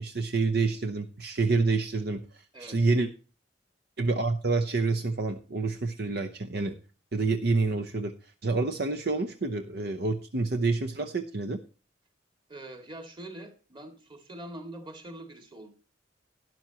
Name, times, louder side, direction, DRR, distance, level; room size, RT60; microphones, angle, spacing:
voice 1, 0.0-3.1 4.0-6.7 7.1-8.1 8.4-11.6, right 3 dB, 55° right, 7 dB, 0.8 m, -28 dB
voice 2, 2.5-2.9 12.5-15.7, right 1 dB, 25° right, 6 dB, 2.1 m, -44 dB
12.5 x 11.0 x 2.9 m, 0.35 s
head